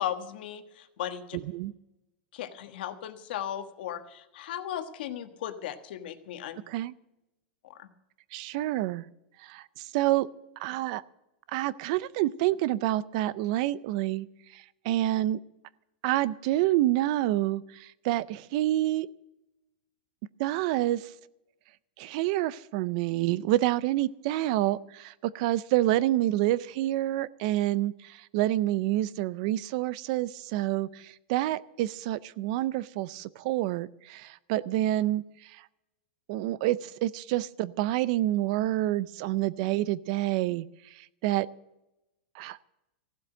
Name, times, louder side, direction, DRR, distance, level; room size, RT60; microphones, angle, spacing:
voice 1, 0.0-1.4 2.3-6.6 7.6-7.9, left 10 dB, 60° left, 9 dB, 1.4 m, -36 dB
voice 2, 8.3-9.1 9.4-10.3 10.6-11.0 11.5-14.3 14.5-15.4 16.0-19.1 20.4-21.1 22.0-35.6 36.3-40.7 40.9-41.5 42.4-42.6, right 15 dB, 40° right, 19 dB, 0.4 m, -28 dB
15.5 x 7.8 x 8.9 m, 0.93 s
supercardioid pair, 170°, 6 cm